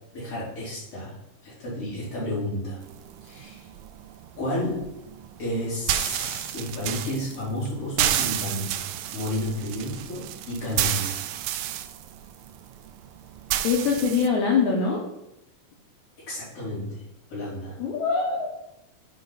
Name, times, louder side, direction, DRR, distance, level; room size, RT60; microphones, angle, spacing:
voice 1, 0.1-1.1 1.4-2.8 3.2-3.7 4.4-4.9 5.4-8.9 9.1-11.2 16.3-17.0 17.3-17.8, left 1 dB, 40° left, -8 dB, 3.9 m, -31 dB
sound 1, 2.8-14.3, right 12 dB, 85° right, 1.9 m, -31 dB
voice 2, 13.6-15.0 17.8-18.5, left 5 dB, 70° left, 0 dB, 1.9 m, -23 dB
10.0 x 4.8 x 4.0 m, 0.86 s
omnidirectional pair, 4.4 m